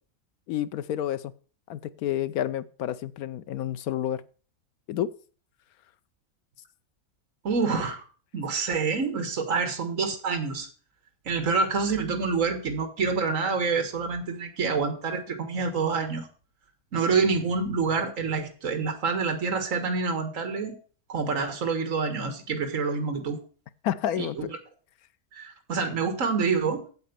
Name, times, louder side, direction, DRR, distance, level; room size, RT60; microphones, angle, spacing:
voice 1, 0.5-1.3 1.7-4.2 4.9-5.1 23.8-24.5, left 11 dB, 85° left, 14 dB, 1.2 m, -29 dB
voice 2, 7.4-8.0 8.3-10.7 11.3-16.3 16.9-20.8 21.1-23.4 24.2-24.5 25.3-26.8, right 4 dB, 65° right, 7 dB, 2.0 m, -27 dB
8.5 x 8.0 x 6.8 m, 0.40 s
omnidirectional pair, 1.5 m